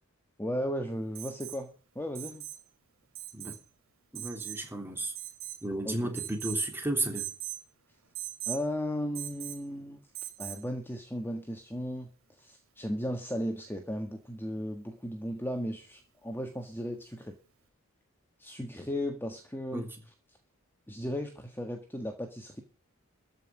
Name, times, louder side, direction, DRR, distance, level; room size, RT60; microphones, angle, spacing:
voice 1, 0.4-1.7 1.9-2.4 5.8-6.0 8.5-10.0 10.4-12.1 12.4-17.3 18.4-19.9 20.9-22.6, equal, 10° left, 4 dB, 1.6 m, -35 dB
Alarm, 1.1-1.6 2.1-2.6 3.1-3.6 4.1-4.6 5.1-5.7 6.1-6.6 7.1-7.6 8.1-8.6 9.1-9.6 10.1-10.6 12.4-12.5, right 14 dB, 70° right, 2.6 m, -40 dB
voice 2, 4.1-5.1 5.6-7.3 19.7-19.9, right 2 dB, 10° right, 3 dB, 3.3 m, -33 dB
14.0 x 5.8 x 9.1 m, 0.38 s
head